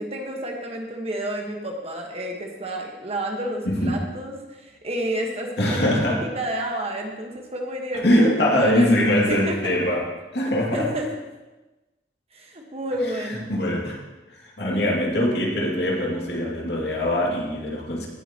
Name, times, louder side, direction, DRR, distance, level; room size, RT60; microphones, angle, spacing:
voice 1, 0.0-9.0 9.3-9.8 10.7-11.1 12.3-13.5, right 1 dB, 35° right, 1 dB, 1.3 m, -30 dB
voice 2, 3.7-4.0 5.6-6.2 8.0-10.1 10.3-10.9 13.2-14.0 14.3-18.1, left 1 dB, 65° left, -2 dB, 2.3 m, -22 dB
17.5 x 7.9 x 3.0 m, 1.1 s
head